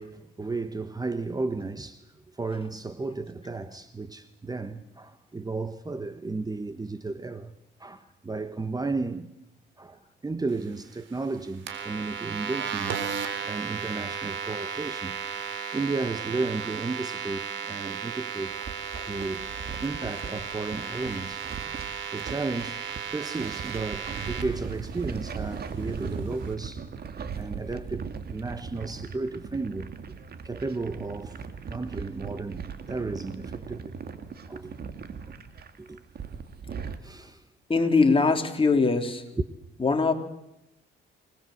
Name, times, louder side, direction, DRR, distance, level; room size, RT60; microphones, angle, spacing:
voice 1, 0.0-7.5 7.8-9.3 9.8-13.0 13.4-15.2 15.7-18.6 18.9-19.5 19.8-21.4 22.1-22.8 23.1-26.9 27.3-30.0 30.4-33.9 34.5-34.7 35.2-35.4 35.8-36.0 37.0-37.4, right 3 dB, 20° right, 1.3 m, -34 dB
sound 1, 11.7-24.4, right 7 dB, 70° right, 3.9 m, -34 dB
sound 2, 18.5-37.0, right 5 dB, 50° right, 2.2 m, -39 dB
voice 2, 37.7-39.2 39.8-40.1, left 4 dB, 25° left, 3.5 m, -22 dB
26.0 x 20.0 x 8.0 m
cardioid pair, 90°, 20 cm